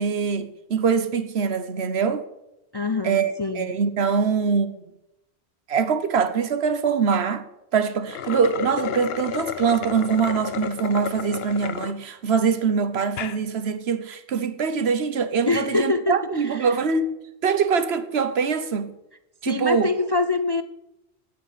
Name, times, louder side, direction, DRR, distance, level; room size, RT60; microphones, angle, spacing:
voice 1, 0.0-2.3 3.0-4.7 5.7-7.5 7.7-17.1 17.4-18.9 19.4-19.9, right 6 dB, 75° right, 1.2 m, -23 dB
voice 2, 2.7-3.7 15.5-16.7 19.5-20.6, left 3 dB, 35° left, 0.4 m, -25 dB
sound 1, 8.0-11.9 12.4-12.5 13.0-13.4, left 8 dB, 70° left, 0.9 m, -31 dB
9.0 x 8.5 x 9.4 m
omnidirectional pair, 1.1 m